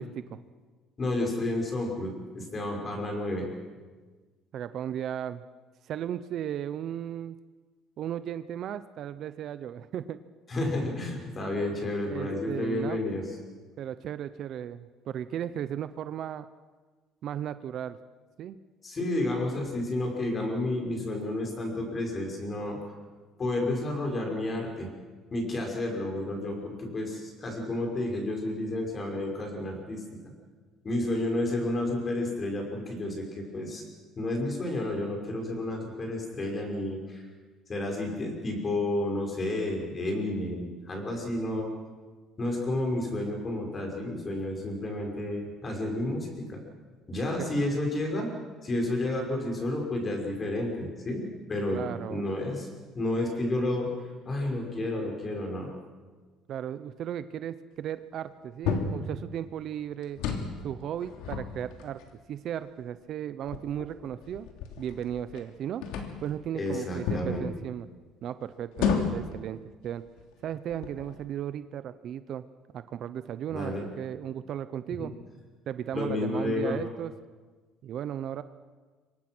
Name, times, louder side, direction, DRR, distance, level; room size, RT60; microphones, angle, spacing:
voice 1, 1.0-3.5 10.5-13.2 18.8-22.8 23.4-24.9 25.3-30.2 30.8-33.8 34.2-37.2 37.7-41.7 42.4-46.6 47.1-48.3 48.6-52.7 53.0-53.9 54.3-55.7 66.5-67.5 73.5-73.9 75.0-75.1 75.9-76.8, left 1 dB, 25° left, 1 dB, 5.5 m, -31 dB
voice 2, 4.5-5.4 5.8-7.3 8.0-10.2 12.1-13.0 13.8-16.5 17.2-18.0 18.4-18.6 47.4-47.6 51.7-52.2 56.5-60.2 60.6-62.0 62.3-64.5 64.8-65.8 66.2-67.9 68.2-70.0 70.4-72.4 72.7-75.1 75.7-77.1 77.8-78.4, right 10 dB, 45° right, 13 dB, 0.7 m, -35 dB
sound 1, 58.7-59.1 60.0-60.6 61.0-62.1 62.8-62.9 63.5-65.5 65.8-66.3 67.1-67.4 68.7-69.3 70.1-70.2 70.7-71.2, left 6 dB, 80° left, 3.1 m, -31 dB
27.0 x 24.0 x 6.2 m, 1.4 s
cardioid pair, 160°, 0 cm